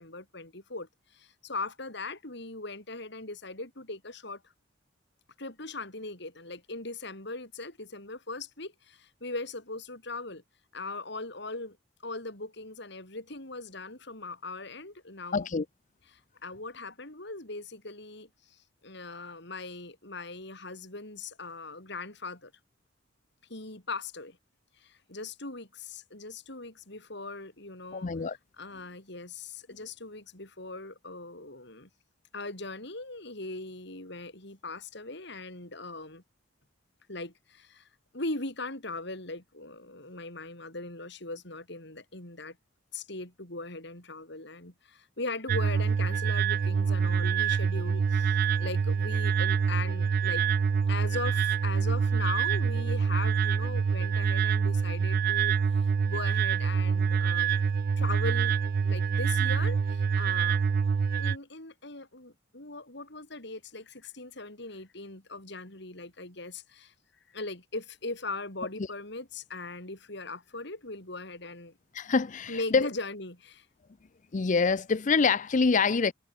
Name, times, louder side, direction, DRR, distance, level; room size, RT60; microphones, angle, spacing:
voice 1, 0.0-4.4 5.4-10.4 10.7-11.8 12.0-15.5 16.0-22.5 23.5-24.4 24.8-28.1 28.6-31.9 32.3-36.2 37.1-37.9 38.1-42.6 42.9-50.4 50.9-58.6 58.8-60.6 61.2-66.9 67.3-71.8 72.5-73.7, left 3 dB, 65° left, 6.3 m, -39 dB
voice 2, 15.3-15.7 27.9-28.4 71.9-72.9 74.3-76.1, left 4 dB, 40° left, 0.5 m, -25 dB
sound 1, 45.5-61.4, right 6 dB, 50° right, 0.3 m, -26 dB
head